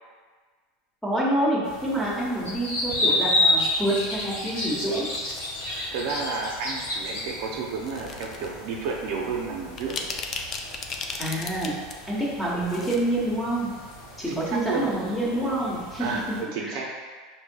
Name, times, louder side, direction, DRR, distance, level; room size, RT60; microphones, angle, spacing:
voice 1, 1.0-5.0 11.2-11.7 12.1-13.7 14.2-16.1 16.6-16.8, right 1 dB, 5° left, -6 dB, 1.0 m, -27 dB
sound 1, 1.6-16.4, left 2 dB, 85° left, 1.1 m, -31 dB
sound 2, 4.8-5.5 6.3-6.6 7.8-8.5 8.9-9.0 9.6-11.9 12.3-13.0 13.3-13.4, left 4 dB, 40° left, 0.4 m, -35 dB
voice 2, 5.9-10.0 14.3-14.9 16.0-16.9, right 4 dB, 70° right, -1 dB, 0.5 m, -31 dB
4.8 x 2.7 x 2.3 m, 1.5 s
supercardioid pair, 120°, 0 cm